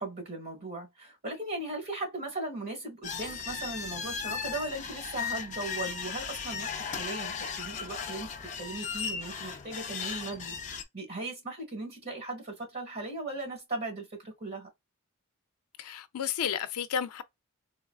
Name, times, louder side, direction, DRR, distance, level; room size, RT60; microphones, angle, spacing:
voice 1, 0.0-14.7, right 2 dB, 45° right, 1.5 m, -38 dB
sound 1, 3.0-10.8, left 6 dB, 35° left, 0.5 m, -36 dB
voice 2, 15.8-17.2, left 8 dB, 90° left, 0.4 m, -32 dB
3.9 x 2.3 x 2.3 m
head